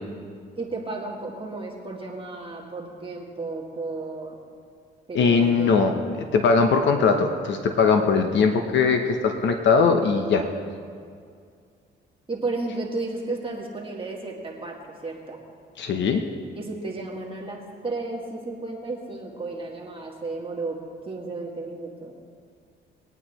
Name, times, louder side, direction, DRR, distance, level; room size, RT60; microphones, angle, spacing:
voice 1, 0.6-4.4 5.1-5.7 12.3-15.4 16.6-20.8 21.1-22.2, right 3 dB, 25° right, -3 dB, 2.2 m, -33 dB
voice 2, 5.1-5.9 6.2-10.4 15.8-16.2, left 5 dB, 65° left, 5 dB, 1.0 m, -20 dB
21.0 x 9.0 x 3.2 m, 2.2 s
cardioid pair, 90°, 20 cm